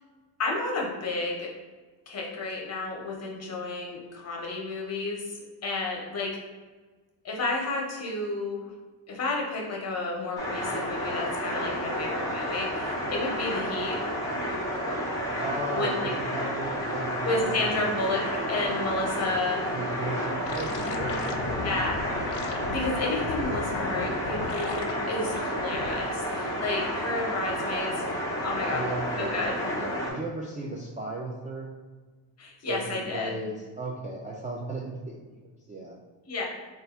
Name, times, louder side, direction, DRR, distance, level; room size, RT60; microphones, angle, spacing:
voice 1, 0.4-1.5 2.1-6.4 7.2-8.7 9.1-14.0 15.7-16.1 17.2-18.2 18.5-19.7 21.6-22.0 22.7-28.0 28.4-28.8 29.2-29.5 32.4-33.4 36.3-36.5, left 2 dB, 35° left, -1 dB, 0.9 m, -31 dB
sound 1, 10.4-30.1, equal, 10° left, 0.8 m, -31 dB
voice 2, 15.4-18.0 19.7-21.7 28.6-31.7 32.7-35.3 35.7-35.9, right 2 dB, 20° right, -4 dB, 0.3 m, -36 dB
sound 2, 20.5-24.9 25.4-25.9, left 4 dB, 65° left, 0.6 m, -36 dB
3.3 x 2.4 x 4.1 m, 1.3 s
cardioid pair, 125°, 44 cm